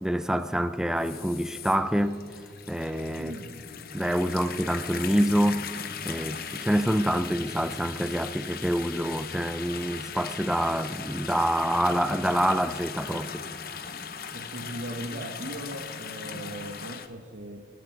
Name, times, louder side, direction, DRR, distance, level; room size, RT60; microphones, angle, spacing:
voice 1, 0.0-2.2 2.7-3.3 3.9-5.6 6.0-13.4, equal, 5° right, 0.5 m, -26 dB
sound 1, 1.0-17.1, left 6 dB, 55° left, 0.9 m, -39 dB
voice 2, 3.1-3.6 14.2-17.6, right 1 dB, 85° right, 1.2 m, -38 dB
26.0 x 10.0 x 4.7 m
head